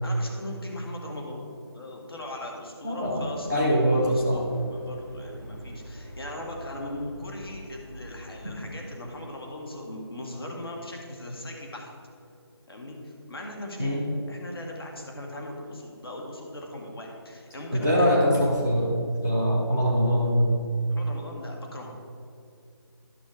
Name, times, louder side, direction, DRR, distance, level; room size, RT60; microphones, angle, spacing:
voice 1, 0.0-1.4 1.7-11.9 12.7-13.9 14.3-18.1 20.9-22.0, left 1 dB, 60° left, 0 dB, 2.1 m, -39 dB
voice 2, 2.8-3.2 3.5-4.4 13.8-14.0 17.7-20.5, equal, 5° left, -5 dB, 0.5 m, -23 dB
sound 1, 3.4-8.8, equal, 30° left, 2.3 m, -44 dB
11.5 x 6.1 x 4.8 m, 2.6 s
figure-of-eight pair, 175°, 14 cm